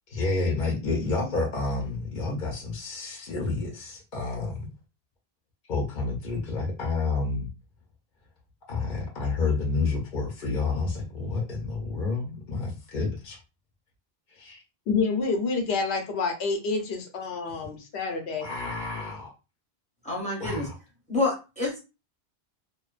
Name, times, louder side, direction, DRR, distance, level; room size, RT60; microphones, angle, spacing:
voice 1, 0.1-4.7 5.7-7.5 8.7-13.4 14.3-14.6 18.4-19.3 20.4-20.7, left 3 dB, 55° left, 0 dB, 0.7 m, -29 dB
voice 2, 14.9-18.5, left 4 dB, 85° left, 3 dB, 0.9 m, -28 dB
voice 3, 20.0-20.7 21.1-21.8, left 2 dB, 10° left, -2 dB, 0.8 m, -28 dB
2.5 x 2.1 x 2.3 m, 0.29 s
omnidirectional pair, 1.1 m